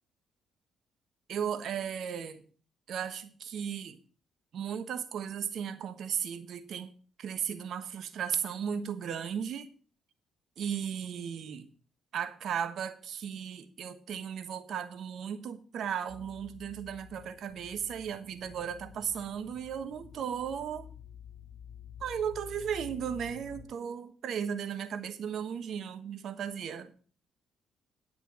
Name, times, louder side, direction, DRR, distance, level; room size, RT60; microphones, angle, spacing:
voice 1, 1.3-2.4 2.9-4.0 4.5-6.9 7.2-9.7 10.6-11.7 12.1-20.9 22.0-26.9, right 8 dB, 65° right, 1.2 m, -36 dB
sound 1, 16.1-23.6, left 8 dB, 40° left, 2.9 m, -50 dB
10.5 x 6.8 x 5.4 m
hypercardioid pair, 50°, 0 cm